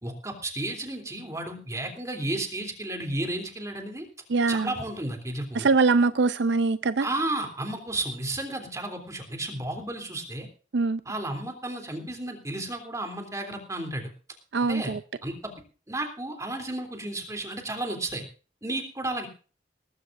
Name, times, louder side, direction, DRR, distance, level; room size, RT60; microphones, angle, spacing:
voice 1, 0.0-4.1 4.5-5.7 7.0-10.5 11.0-14.1 14.7-14.9 15.2-15.5 15.9-18.2 18.6-19.3, right 2 dB, 15° right, 3.2 m, -33 dB
voice 2, 4.3-4.7 5.5-7.1 10.7-11.0 14.5-15.0, right 4 dB, 70° right, 0.5 m, -23 dB
19.0 x 15.0 x 2.6 m
head